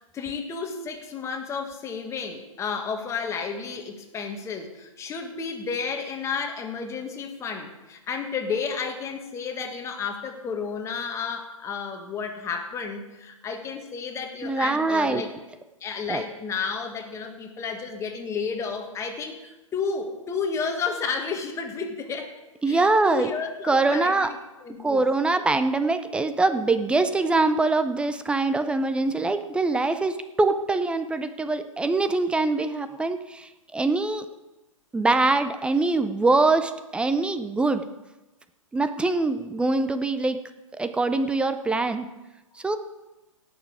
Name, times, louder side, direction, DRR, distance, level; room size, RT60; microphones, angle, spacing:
voice 1, 0.0-15.3 15.8-22.3 22.7-24.3 24.6-25.1 33.0-33.1, left 5 dB, 15° left, 4 dB, 1.6 m, -32 dB
voice 2, 14.4-15.2 16.1-16.2 22.6-23.3 23.6-24.3 24.8-34.3 34.9-37.9 38.7-40.4 40.7-42.1 42.6-42.8, right 3 dB, 5° right, 10 dB, 0.5 m, -23 dB
17.5 x 6.8 x 4.9 m, 1.0 s
figure-of-eight pair, 120°, 17 cm